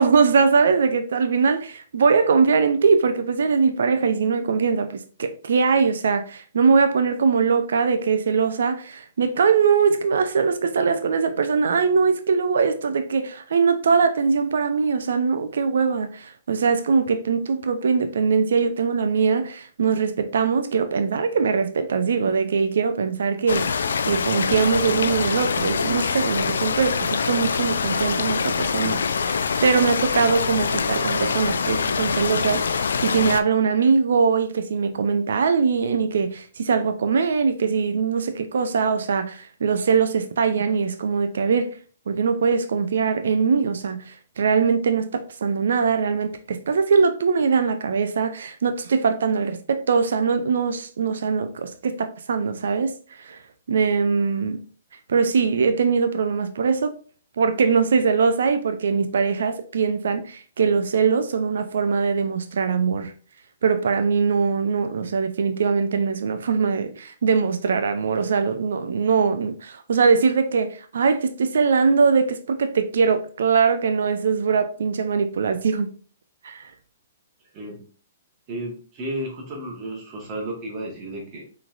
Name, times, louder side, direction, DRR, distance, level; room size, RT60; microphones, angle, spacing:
voice 1, 0.0-23.8 24.0-29.0 29.3-41.8 42.1-53.4 53.7-54.6 55.1-56.9 57.4-63.1 63.6-75.9 76.4-76.7, right 5 dB, 70° right, 0.5 m, -21 dB
sound 1, 23.5-33.4, left 5 dB, 70° left, 0.4 m, -24 dB
voice 2, 77.5-77.8 78.5-81.4, right 1 dB, 35° right, 1.3 m, -33 dB
5.8 x 3.3 x 2.5 m
hypercardioid pair, 125°, 0 cm